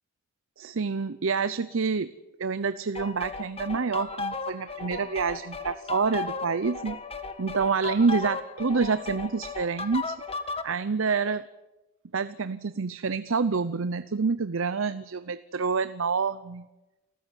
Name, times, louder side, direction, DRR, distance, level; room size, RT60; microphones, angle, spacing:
voice 1, 0.6-2.1 2.4-7.0 7.4-10.2 10.6-11.4 12.1-16.7, right 5 dB, 70° right, 14 dB, 0.7 m, -27 dB
sound 1, 3.0-10.7, left 4 dB, 30° left, 1.5 m, -35 dB
29.0 x 14.0 x 9.3 m, 1.1 s
head